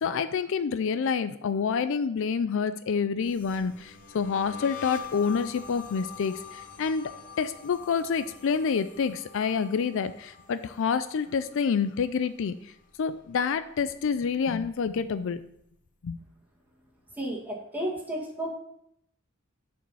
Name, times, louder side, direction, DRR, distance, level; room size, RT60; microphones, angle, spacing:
voice 1, 0.0-7.1 7.4-12.7 13.0-15.4 16.0-16.2, left 6 dB, 65° left, 12 dB, 0.4 m, -28 dB
sound 1, 3.2-12.4 12.7-13.1 13.4-15.0, left 7 dB, 40° left, 1.0 m, -45 dB
voice 2, 17.2-18.6, right 1 dB, 10° right, -3 dB, 1.9 m, -32 dB
7.1 x 5.2 x 5.4 m, 0.74 s
head